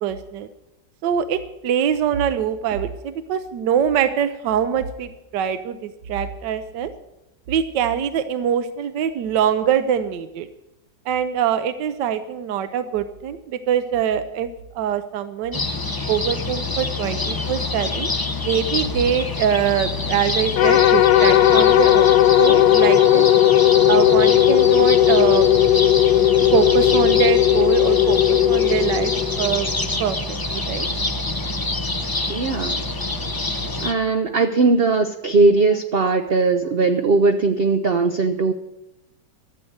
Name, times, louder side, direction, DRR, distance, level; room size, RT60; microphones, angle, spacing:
voice 1, 0.0-0.5 1.0-6.9 7.5-10.5 11.1-14.5 14.7-15.6 16.1-18.1 18.4-22.1 22.4-23.3 23.9-25.6 26.5-29.7 30.0-30.2 30.5-30.9, right 8 dB, 80° right, 11 dB, 1.3 m, -23 dB
sound 1, 15.5-33.9, left 2 dB, 35° left, 0.3 m, -26 dB
sound 2, 20.6-29.9, left 12 dB, 75° left, 1.2 m, -16 dB
voice 2, 32.3-32.8 33.1-33.2 33.8-38.5, right 3 dB, 65° right, 7 dB, 0.6 m, -19 dB
13.0 x 7.6 x 8.0 m, 0.90 s
omnidirectional pair, 1.9 m